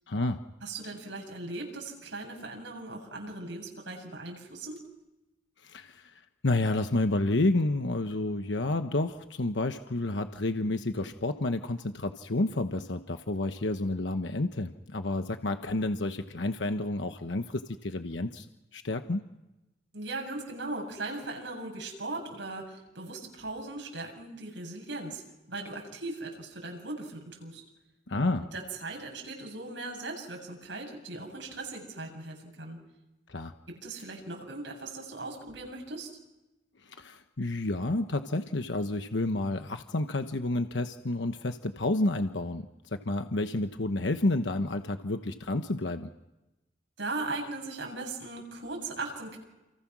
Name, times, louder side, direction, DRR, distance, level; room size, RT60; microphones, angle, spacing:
voice 1, 0.1-0.4 5.6-6.1 6.4-18.4 18.7-19.3 28.1-28.4 33.3-33.5 36.8-46.1, left 2 dB, 80° left, 7 dB, 1.1 m, -30 dB
voice 2, 0.6-4.8 19.9-25.2 25.5-27.6 28.5-32.8 33.7-36.1 47.0-49.4, right 2 dB, 90° right, 1 dB, 7.7 m, -38 dB
29.0 x 29.0 x 6.2 m, 1.0 s
head